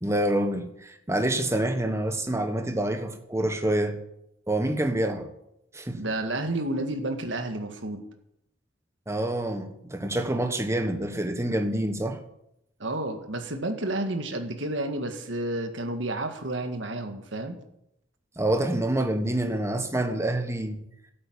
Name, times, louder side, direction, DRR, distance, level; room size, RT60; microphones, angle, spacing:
voice 1, 0.0-4.0 4.5-5.3 5.7-6.1 9.1-12.2 18.4-20.8, right 1 dB, 15° right, 1.3 m, -27 dB
voice 2, 5.9-8.0 12.8-17.6, right 1 dB, 65° right, 1.8 m, -31 dB
12.0 x 8.7 x 8.7 m
head